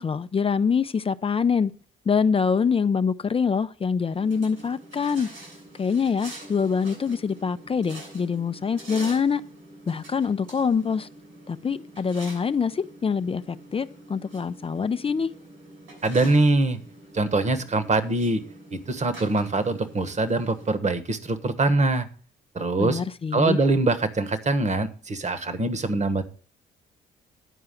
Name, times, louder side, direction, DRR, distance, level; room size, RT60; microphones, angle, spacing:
voice 1, 0.0-1.7 2.1-5.3 5.8-9.4 9.9-11.1 11.5-15.3 22.8-23.6, left 6 dB, 30° left, 0.5 m, -25 dB
sound 1, 4.1-20.7, right 1 dB, 90° right, 6.5 m, -45 dB
voice 2, 16.0-16.8 17.1-18.4 18.9-22.1 22.5-23.0 23.3-26.2, right 2 dB, 35° right, 1.3 m, -23 dB
10.0 x 4.7 x 7.6 m
cardioid pair, 90°, 20 cm